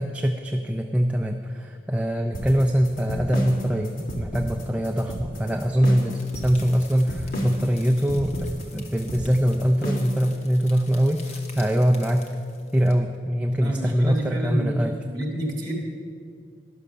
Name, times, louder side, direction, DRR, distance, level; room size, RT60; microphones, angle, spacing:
voice 1, 0.0-12.3 12.7-14.9, equal, 10° right, 3 dB, 0.4 m, -23 dB
sound 1, 2.3-10.2, equal, 55° left, 1.7 m, -33 dB
sound 2, 6.0-12.9, left 4 dB, 40° left, 1.1 m, -48 dB
voice 2, 13.5-15.7, right 1 dB, 25° right, 0 dB, 2.0 m, -29 dB
11.5 x 6.3 x 6.8 m, 2.3 s
head